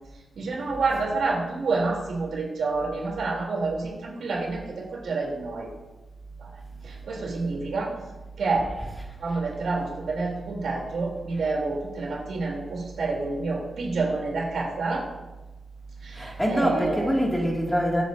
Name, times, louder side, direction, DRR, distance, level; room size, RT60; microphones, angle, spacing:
voice 1, 0.3-5.7 6.4-6.5 6.8-8.0 8.4-8.7 9.2-15.0 16.0-17.1, right 3 dB, 80° right, -2 dB, 3.2 m, -28 dB
voice 2, 16.1-18.0, equal, 5° left, -2 dB, 2.2 m, -24 dB
23.5 x 8.3 x 2.7 m, 1.1 s
wide cardioid pair, 110°, 0 cm